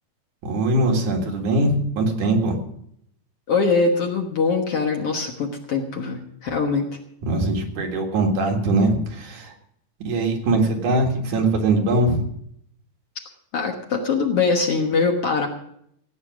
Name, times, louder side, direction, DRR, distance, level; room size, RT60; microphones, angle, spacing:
voice 1, 0.4-2.6 7.2-9.5 10.0-12.3, right 2 dB, 70° right, 2 dB, 3.4 m, -21 dB
voice 2, 3.5-6.9 13.5-15.5, left 4 dB, 55° left, 3 dB, 2.0 m, -22 dB
16.5 x 9.2 x 6.2 m, 0.71 s
omnidirectional pair, 3.8 m